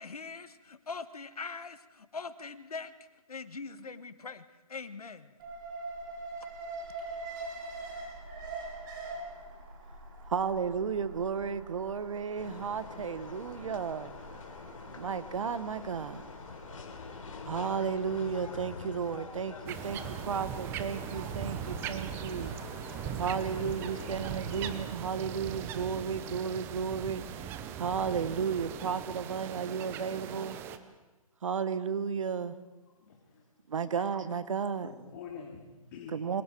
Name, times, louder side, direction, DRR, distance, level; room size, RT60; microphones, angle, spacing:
voice 1, 0.0-2.9 3.3-4.4 4.7-5.3 6.4-6.5, left 4 dB, 85° left, 12 dB, 1.5 m, -42 dB
Alarm, 5.4-21.5 21.8-21.9, right 2 dB, 35° right, 6.3 m, -45 dB
voice 2, 10.3-14.1 15.0-16.3 17.4-22.5 23.2-30.6 31.4-32.6 33.7-34.9 36.1-36.4, right 6 dB, 60° right, 14 dB, 1.4 m, -33 dB
sound 1, 12.3-24.9, left 4 dB, 60° left, 3.8 m, -46 dB
sound 2, 19.7-30.8, right 9 dB, 10° right, 0.7 m, -39 dB
voice 3, 33.0-33.5 33.9-34.0 34.8-36.2, left 6 dB, 35° left, -1 dB, 3.1 m, -46 dB
27.5 x 25.0 x 4.7 m, 1.1 s
hypercardioid pair, 155°, 19 cm